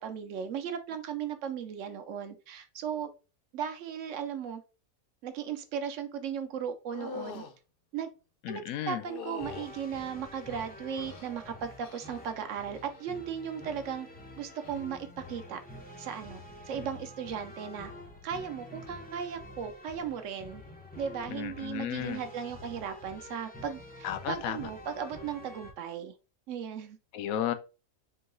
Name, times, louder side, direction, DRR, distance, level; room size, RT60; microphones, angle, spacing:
voice 1, 0.0-3.1 3.5-4.6 5.2-7.4 7.9-8.1 8.5-14.1 14.4-15.6 16.0-17.9 18.2-20.6 21.0-26.1 26.5-27.0, right 7 dB, 65° right, 0.9 m, -36 dB
sound 1, 6.9-7.5 9.0-9.7 10.5-11.3 11.8-12.2 12.6-13.0 14.6-14.8, left 5 dB, 60° left, 0.6 m, -43 dB
voice 2, 8.4-9.0 21.3-22.2 24.0-24.7 27.1-27.5, left 11 dB, 75° left, 1.0 m, -33 dB
sound 2, 9.4-25.7, left 1 dB, 10° left, 0.4 m, -48 dB
3.8 x 2.8 x 3.9 m
omnidirectional pair, 1.5 m